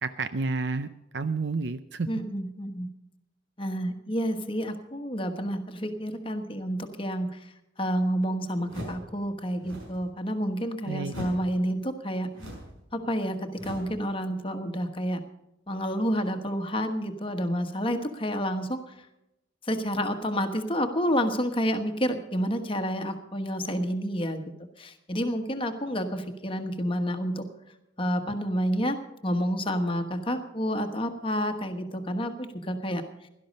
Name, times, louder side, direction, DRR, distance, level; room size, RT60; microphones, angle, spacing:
voice 1, 0.0-2.1 10.9-11.1, right 3 dB, 60° right, 11 dB, 0.6 m, -30 dB
voice 2, 2.1-2.9 3.6-12.3 12.9-15.2 15.7-19.1 19.6-27.5 28.0-29.0 29.2-33.0, equal, 25° left, 7 dB, 1.3 m, -29 dB
sound 1, 8.7-9.1 9.6-10.0 11.1-11.5 12.3-12.8 13.6-14.0, equal, 85° right, 6.4 m, -39 dB
17.0 x 12.0 x 5.3 m, 0.88 s
head